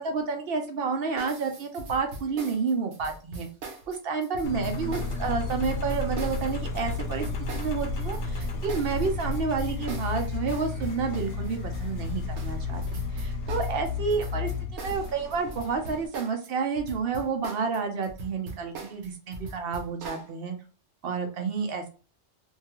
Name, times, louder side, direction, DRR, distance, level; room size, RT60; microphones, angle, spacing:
voice 1, 0.0-3.5 3.9-7.3 7.5-20.6 21.0-21.9, right 5 dB, 65° right, 5 dB, 0.8 m, -30 dB
sound 1, 1.2-16.5 16.8-20.3, right 2 dB, 90° right, 1.0 m, -41 dB
Engine, 4.4-16.1, left 4 dB, 80° left, 0.9 m, -32 dB
2.7 x 2.3 x 2.9 m, 0.34 s
omnidirectional pair, 1.2 m